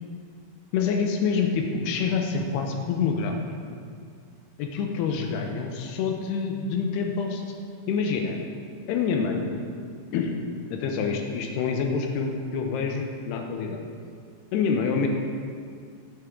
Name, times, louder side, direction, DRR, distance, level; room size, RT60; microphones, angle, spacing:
voice 1, 0.7-3.3 3.7-3.8 4.6-7.4 7.9-8.4 8.9-9.6 10.1-10.4 10.7-13.8 14.5-15.1, left 5 dB, 80° left, 3 dB, 2.6 m, -27 dB
9.5 x 6.8 x 3.6 m, 2.2 s
omnidirectional pair, 4.9 m